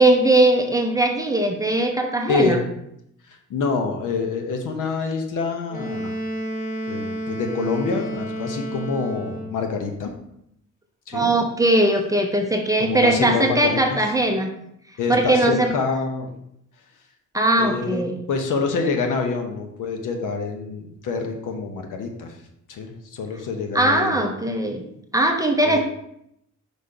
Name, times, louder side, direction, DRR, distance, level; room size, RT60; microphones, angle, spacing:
voice 1, 0.0-2.6 11.1-14.5 15.1-15.7 17.3-18.1 23.7-24.8 25.1-25.8, right 1 dB, 10° right, 2 dB, 0.5 m, -19 dB
voice 2, 2.3-2.6 3.3-6.1 6.9-10.1 11.1-11.3 12.8-14.0 15.0-16.3 17.6-22.4 22.7-24.2 25.6-25.8, left 4 dB, 75° left, 4 dB, 1.1 m, -26 dB
Wind instrument woodwind instrument, 5.7-9.6, right 1 dB, 25° left, 1.0 m, -30 dB
5.1 x 4.3 x 5.0 m, 0.77 s
cardioid pair, 170°, 31 cm